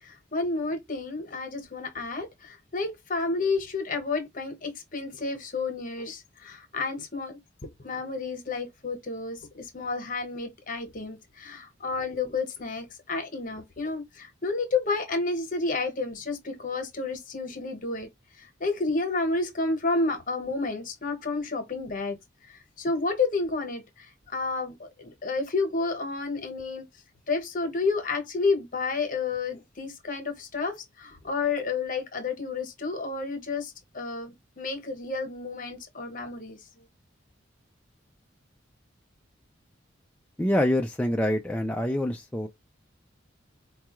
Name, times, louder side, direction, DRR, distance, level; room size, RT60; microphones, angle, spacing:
voice 1, 0.0-7.4 7.8-18.1 18.4-22.2 22.5-26.9 27.3-36.8, left 3 dB, 45° left, 1.0 m, -31 dB
voice 2, 40.4-42.5, left 1 dB, 5° left, 0.4 m, -26 dB
4.6 x 2.3 x 3.0 m
head